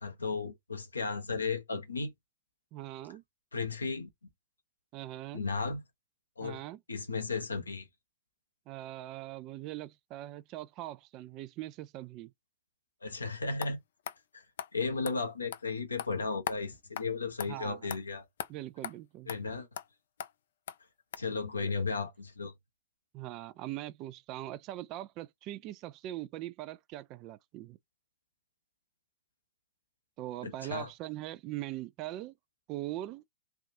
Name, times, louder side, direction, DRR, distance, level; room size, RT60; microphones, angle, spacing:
voice 1, 0.0-2.1 3.5-4.1 5.3-5.8 6.4-6.6 6.9-7.9 13.0-13.8 14.3-14.4 14.7-18.2 19.3-19.7 21.2-22.5 30.4-30.9, left 4 dB, 90° left, 0.7 m, -34 dB
voice 2, 2.7-3.2 4.9-5.4 6.4-6.8 8.7-12.3 17.5-17.9 18.5-19.3 21.6-21.7 23.1-27.8 30.2-32.3 32.7-33.2, right 15 dB, 40° right, 0.3 m, -41 dB
sound 1, 13.6-13.7 14.1-14.2 14.6-14.7 15.1-15.2 15.5-15.6 16.0-16.1 16.5-16.6 17.0-17.1 17.4-17.5 17.9-18.0 18.4-18.5 18.8-18.9 19.3-19.4 19.8-19.9 20.2-20.3 20.7-20.8 21.1-21.2, left 9 dB, 65° left, 0.3 m, -38 dB
3.4 x 2.4 x 2.6 m
figure-of-eight pair, 105°, 0 cm